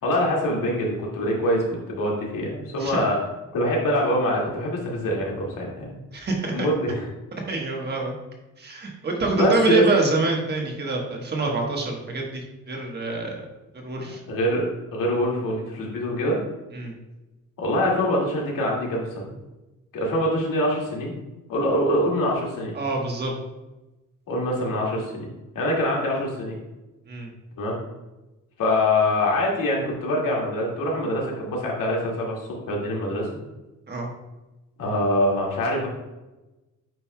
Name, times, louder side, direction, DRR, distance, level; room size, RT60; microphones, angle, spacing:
voice 1, 0.0-3.2 3.5-5.9 6.5-7.0 9.4-9.8 14.3-16.4 17.6-19.3 19.9-21.2 21.5-22.7 24.3-25.3 25.5-26.5 27.6-27.8 28.6-32.3 32.7-33.3 34.8-35.9, left 1 dB, 90° left, -3 dB, 2.2 m, -24 dB
voice 2, 6.1-6.7 7.5-8.1 8.6-13.4 13.7-14.2 16.7-16.9 22.7-23.3 27.1-27.3 33.9-34.1, right 3 dB, 30° right, 0 dB, 1.3 m, -26 dB
9.0 x 5.5 x 2.3 m, 1.1 s
wide cardioid pair, 180°, 32 cm